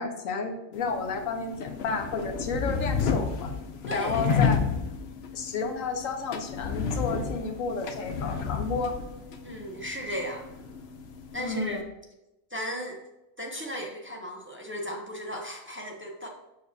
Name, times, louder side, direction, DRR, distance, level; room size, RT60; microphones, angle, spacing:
voice 1, 0.0-3.5 3.9-4.6 5.3-9.0 11.4-11.8, left 4 dB, 80° left, 5 dB, 1.2 m, -31 dB
sound 1, 0.7-11.8, left 6 dB, 60° left, 0.8 m, -31 dB
voice 2, 3.9-4.5 9.4-10.5 11.3-11.8 12.5-13.0 13.4-16.3, equal, 15° right, 0 dB, 0.6 m, -35 dB
6.6 x 6.3 x 2.7 m, 0.96 s
omnidirectional pair, 1.4 m